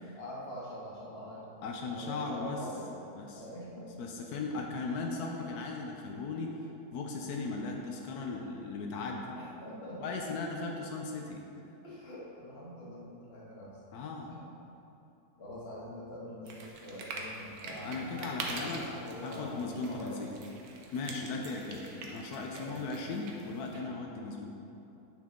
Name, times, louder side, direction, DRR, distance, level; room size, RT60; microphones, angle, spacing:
voice 1, 0.1-2.9 3.3-3.9 4.5-4.7 9.3-10.0 11.8-13.7 14.3-14.4 15.4-20.1 22.5-22.8, equal, 40° left, -6 dB, 1.7 m, -44 dB
voice 2, 1.6-2.6 3.2-3.4 4.0-6.6 6.9-9.3 10.0-11.4 13.9-14.3 17.8-18.9 19.2-20.3 20.9-24.5, left 3 dB, 90° left, 1 dB, 1.2 m, -37 dB
sound 1, 16.4-23.8, right 3 dB, 75° right, 1.4 m, -44 dB
8.2 x 6.3 x 3.7 m, 2.9 s
omnidirectional pair, 1.6 m